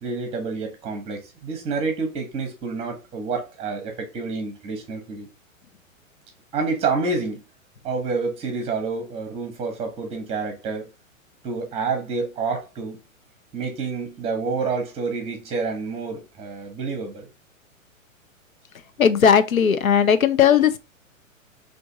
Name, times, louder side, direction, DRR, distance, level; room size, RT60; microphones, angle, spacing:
voice 1, 0.0-5.3 6.5-7.4 7.8-10.9 11.4-13.0 13.5-17.3, right 4 dB, 15° right, 0.9 m, -28 dB
voice 2, 19.0-20.8, left 7 dB, 85° left, 0.6 m, -17 dB
3.4 x 2.6 x 3.8 m
figure-of-eight pair, 110°, 40 cm